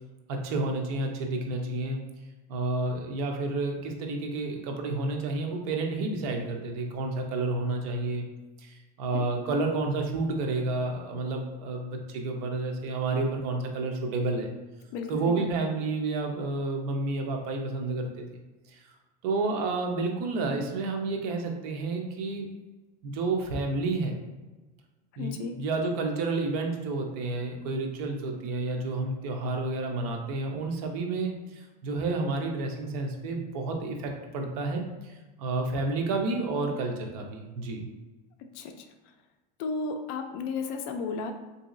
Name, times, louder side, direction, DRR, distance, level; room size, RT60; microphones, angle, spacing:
voice 1, 0.3-2.0 2.5-8.3 8.6-14.5 15.1-18.2 19.2-22.5 23.0-24.1 25.2-35.1 35.4-37.9, right 3 dB, 60° right, 2 dB, 0.6 m, -30 dB
voice 2, 14.9-15.4 25.2-25.5 38.5-38.9 39.6-41.3, left 4 dB, 55° left, 6 dB, 0.4 m, -33 dB
3.8 x 2.7 x 2.5 m, 1.2 s
supercardioid pair, 165°, 21 cm